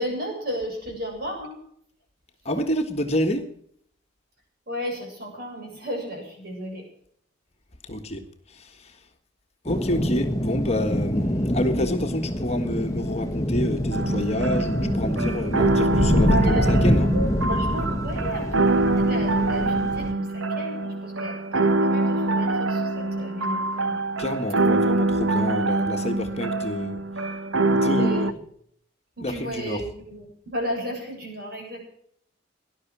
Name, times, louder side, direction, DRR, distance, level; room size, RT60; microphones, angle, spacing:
voice 1, 0.0-1.6 4.7-6.9 16.3-24.0 27.7-28.4 29.2-31.9, equal, 50° right, 7.4 m, -33 dB
voice 2, 2.4-3.5 7.8-9.0 9.6-17.1 24.2-27.0 27.7-28.3 29.2-29.8, left 1 dB, 30° left, 1.6 m, -28 dB
sound 1, 9.7-20.1, equal, 15° left, 1.1 m, -25 dB
sound 2, 13.9-28.3, right 2 dB, 90° right, 1.0 m, -24 dB
18.5 x 11.5 x 6.1 m
head